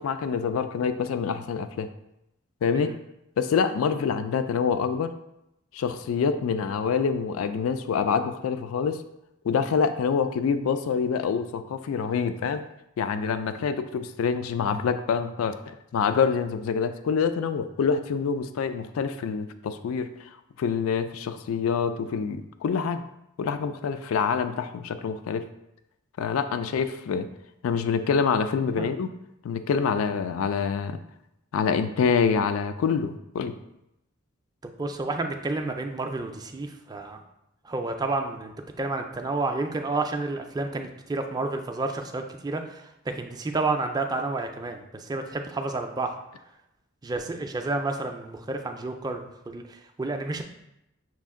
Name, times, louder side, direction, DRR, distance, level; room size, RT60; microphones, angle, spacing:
voice 1, 0.0-1.9 2.6-2.9 3.4-5.1 5.7-9.0 9.4-12.6 13.0-20.3 20.6-23.0 23.4-25.4 26.2-27.3 27.6-29.1 29.4-31.0 31.5-33.5, left 6 dB, 80° left, 10 dB, 0.3 m, -26 dB
voice 2, 34.6-37.2 37.6-46.1 47.0-50.4, right 3 dB, 20° right, 5 dB, 0.3 m, -30 dB
6.0 x 2.5 x 3.6 m, 0.84 s
head